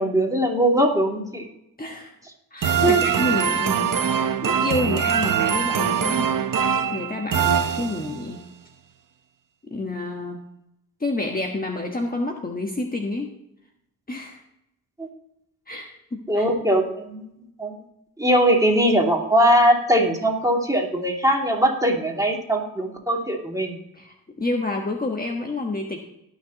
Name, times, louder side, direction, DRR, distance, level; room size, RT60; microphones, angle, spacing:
voice 1, 0.0-1.5 2.8-3.0 15.0-15.1 16.3-17.3 17.6-17.8 18.2-23.8, right 1 dB, 10° right, 0 dB, 2.6 m, -20 dB
voice 2, 1.8-2.1 2.5-6.3 6.9-8.4 9.7-10.4 11.0-13.3 14.1-14.4 15.7-16.5 23.9-26.0, left 2 dB, 25° left, 2 dB, 1.3 m, -29 dB
sound 1, 2.6-8.3, right 7 dB, 55° right, 0.8 m, -23 dB
18.5 x 6.4 x 3.0 m, 0.82 s
cardioid pair, 85°, 38 cm